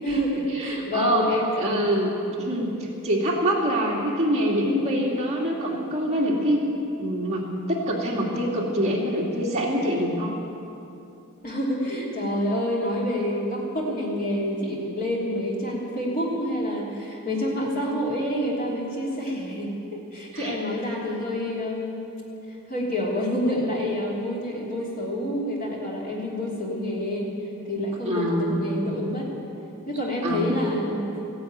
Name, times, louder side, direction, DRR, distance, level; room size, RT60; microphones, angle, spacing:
voice 1, 0.0-1.8 11.4-22.0 22.7-27.3 27.6-29.3 29.9-31.0, left 1 dB, 40° left, -4 dB, 3.2 m, -28 dB
voice 2, 0.5-2.1 2.4-10.4 20.3-20.5 28.1-28.9 30.2-30.6, equal, 30° right, -3 dB, 2.2 m, -25 dB
15.0 x 10.5 x 9.1 m, 2.8 s
head